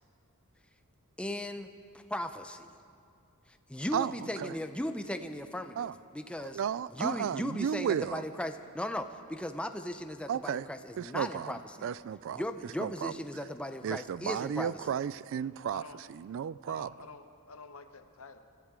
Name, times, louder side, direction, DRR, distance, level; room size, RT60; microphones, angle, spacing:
voice 1, 1.2-1.7 1.9-2.7 3.7-6.6 6.9-11.9 12.3-14.9, left 1 dB, 5° left, 0.6 m, -37 dB
voice 2, 6.4-8.2 10.3-10.7 11.0-11.5 11.8-12.4 12.8-13.1 13.8-15.8 16.2-16.9, right 8 dB, 60° right, 0.3 m, -33 dB
voice 3, 15.7-16.1 16.7-18.4, left 4 dB, 70° left, 1.0 m, -49 dB
26.5 x 14.0 x 3.7 m
head